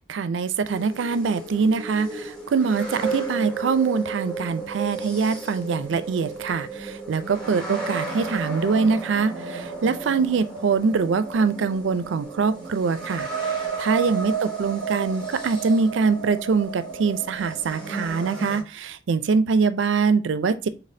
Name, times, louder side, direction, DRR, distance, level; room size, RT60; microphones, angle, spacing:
voice 1, 0.1-13.3 13.8-20.7, right 5 dB, 90° right, 0.4 m, -23 dB
sound 1, 0.6-18.6, right 4 dB, 5° left, 2.0 m, -33 dB
4.1 x 3.4 x 2.6 m
head